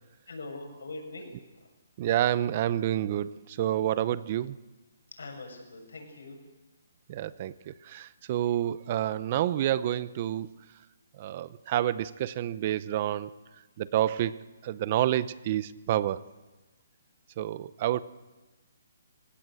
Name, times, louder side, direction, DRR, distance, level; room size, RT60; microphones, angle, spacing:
voice 1, 0.3-1.3 1.5-1.7 5.1-6.4, left 2 dB, 85° left, 4 dB, 7.3 m, -42 dB
voice 2, 2.0-4.6 7.1-10.6 11.2-13.3 13.8-16.2 17.4-18.0, right 12 dB, 30° right, 17 dB, 0.7 m, -29 dB
28.0 x 17.0 x 7.8 m, 1.2 s
hypercardioid pair, 170°, 0 cm